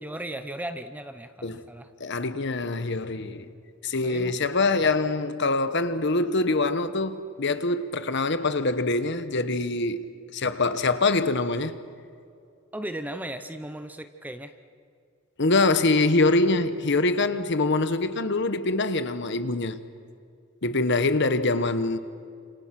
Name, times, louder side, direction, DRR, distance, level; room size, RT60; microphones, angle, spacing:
voice 1, 0.0-1.9 3.3-3.5 4.0-4.5 12.7-14.5, right 1 dB, 10° right, 0.9 m, -37 dB
voice 2, 2.0-3.5 3.8-10.1 10.3-11.8 15.4-19.8 20.6-22.0, left 3 dB, 55° left, 1.1 m, -24 dB
30.0 x 27.0 x 6.0 m
head